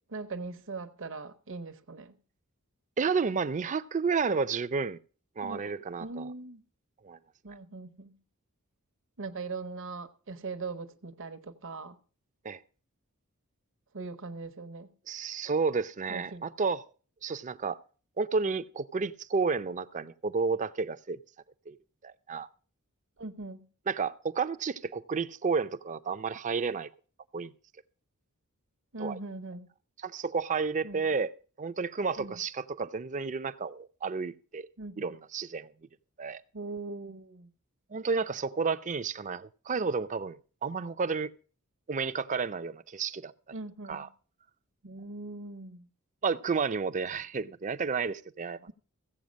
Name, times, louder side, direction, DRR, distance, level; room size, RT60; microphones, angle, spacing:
voice 1, 0.1-2.1 5.4-5.6 6.0-6.6 7.4-8.2 9.2-12.0 13.9-14.9 16.1-16.4 23.2-23.7 28.9-29.7 30.8-31.0 32.2-32.4 34.8-35.1 36.5-37.5 43.5-44.1 44.8-45.9 48.7-48.8, right 3 dB, 60° right, 0.9 m, -40 dB
voice 2, 3.0-5.0 5.4-6.3 7.0-7.2 12.4-12.6 15.1-16.8 17.2-17.8 18.2-21.2 21.7-21.8 22.0-22.5 23.9-26.9 27.3-27.5 29.0-29.2 30.0-34.7 35.0-35.7 36.2-36.4 37.9-41.3 41.9-43.3 43.9-44.1 46.2-48.6, right 5 dB, 35° right, 0.5 m, -31 dB
15.5 x 7.9 x 5.2 m
head